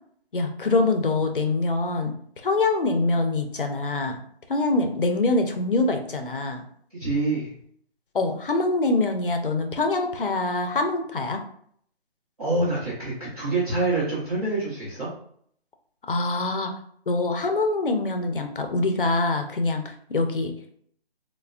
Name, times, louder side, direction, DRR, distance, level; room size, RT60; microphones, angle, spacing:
voice 1, 0.3-2.1 2.4-4.2 4.5-6.6 8.1-11.4 16.1-16.7 17.1-20.5, left 2 dB, 55° left, 5 dB, 0.5 m, -24 dB
voice 2, 6.9-7.5 12.4-15.1, right 2 dB, 35° right, -10 dB, 0.9 m, -26 dB
3.2 x 2.1 x 2.3 m, 0.63 s
hypercardioid pair, 175°, 32 cm